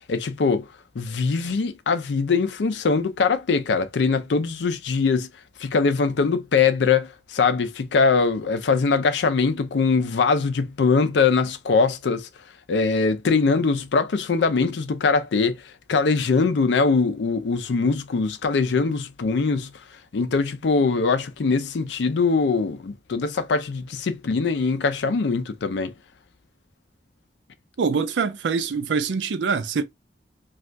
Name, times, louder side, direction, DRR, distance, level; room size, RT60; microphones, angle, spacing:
voice 1, 0.1-0.7 1.0-5.3 5.6-12.3 12.7-15.6 15.9-19.7 20.1-25.9, left 4 dB, 80° left, 0.5 m, -22 dB
voice 2, 27.8-29.8, right 5 dB, 90° right, 0.5 m, -24 dB
2.5 x 2.4 x 3.1 m
head